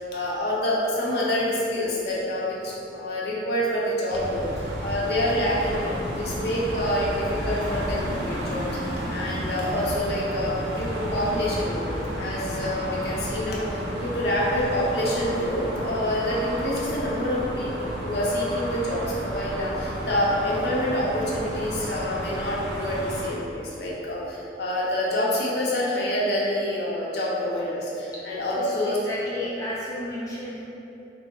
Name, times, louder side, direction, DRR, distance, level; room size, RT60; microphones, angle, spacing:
voice 1, 0.1-4.5 4.8-7.1 7.4-8.7 9.1-29.0, left 1 dB, 70° left, -5 dB, 0.7 m, -27 dB
sound 1, 4.1-23.3, equal, 80° right, 0.6 m, -32 dB
voice 2, 28.5-30.7, equal, 20° left, -7 dB, 0.3 m, -33 dB
3.6 x 2.0 x 3.7 m, 2.8 s
head